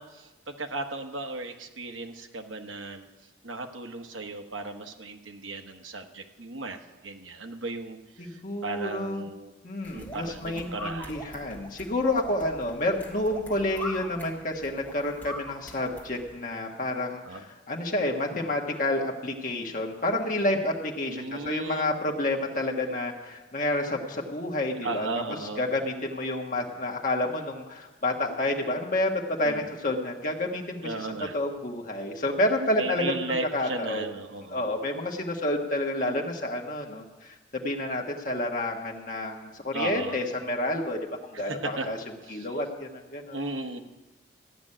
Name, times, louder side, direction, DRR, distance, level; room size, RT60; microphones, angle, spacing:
voice 1, 0.0-3.1 3.4-9.5 9.9-11.1 17.2-17.4 21.1-21.9 24.8-25.7 29.4-29.7 30.8-31.4 32.8-34.7 39.7-40.2 41.3-41.9 42.2-42.5 43.3-43.8, right 2 dB, 80° right, 4 dB, 1.2 m, -36 dB
voice 2, 8.2-9.2 9.6-25.2 25.6-31.1 31.3-33.2 33.5-34.0 34.5-42.0 42.3-43.4, left 1 dB, 40° left, 0 dB, 1.5 m, -29 dB
sound 1, 9.8-16.3, left 1 dB, 10° left, 2.2 m, -42 dB
14.0 x 6.2 x 9.9 m, 1.1 s
head